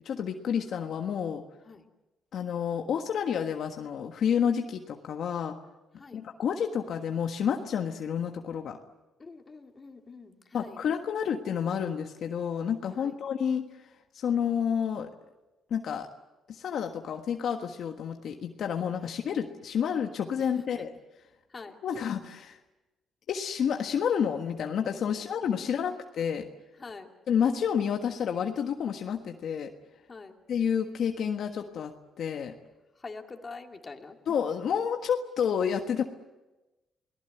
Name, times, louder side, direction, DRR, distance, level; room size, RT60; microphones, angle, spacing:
voice 1, 0.0-1.4 2.3-5.6 6.1-8.8 10.5-13.8 14.1-15.1 15.7-16.1 16.5-20.9 21.8-22.6 23.3-26.4 27.3-29.7 30.5-32.5 34.3-36.0, left 7 dB, 65° left, 4 dB, 1.5 m, -30 dB
voice 2, 9.2-10.8 12.9-13.2 21.5-21.8 25.1-26.0 26.8-27.1 30.1-30.4 33.0-34.2, left 4 dB, 30° left, 3 dB, 2.6 m, -45 dB
28.5 x 18.5 x 8.0 m, 1.1 s
cardioid pair, 90°, 0 cm